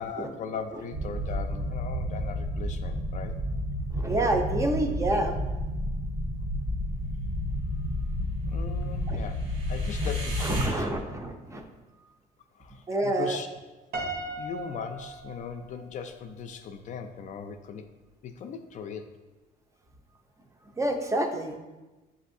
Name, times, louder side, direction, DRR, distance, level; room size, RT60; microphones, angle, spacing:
voice 1, 0.0-3.4 8.5-10.9 12.6-13.5 14.3-17.9 18.2-19.1, left 6 dB, 50° left, 7 dB, 0.4 m, -39 dB
sound 1, 0.9-10.7, left 1 dB, 85° right, 1.3 m, -31 dB
voice 2, 3.9-5.4 9.1-9.2 10.4-11.7 12.9-13.4 20.8-21.6, right 1 dB, 20° right, 4 dB, 0.5 m, -28 dB
Piano, 13.9-16.2, right 2 dB, 70° right, 0.8 m, -37 dB
7.2 x 2.6 x 2.6 m, 1.1 s
cardioid pair, 110°, 17 cm